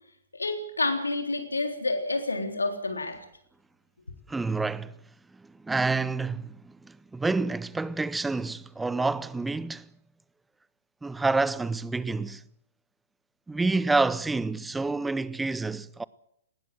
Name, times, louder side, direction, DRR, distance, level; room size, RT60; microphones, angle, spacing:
voice 1, 0.3-3.2, left 2 dB, 85° left, 3.7 m, -29 dB
voice 2, 4.3-4.9 5.6-9.9 11.0-12.4 13.5-16.0, right 3 dB, 5° right, 0.7 m, -28 dB
20.0 x 17.5 x 7.8 m
figure-of-eight pair, 115°, 0 cm